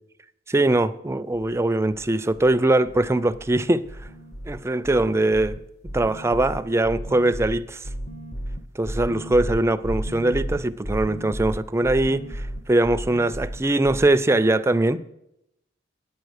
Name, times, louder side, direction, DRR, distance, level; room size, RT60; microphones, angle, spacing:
voice 1, 0.5-4.1 4.5-5.6 5.9-7.9 8.8-15.0, right 2 dB, 15° right, 0.4 m, -22 dB
sound 1, 1.3-1.6 1.9-2.6 2.9-3.6 3.8-14.1, equal, 40° left, 0.7 m, -34 dB
9.4 x 8.6 x 6.4 m
head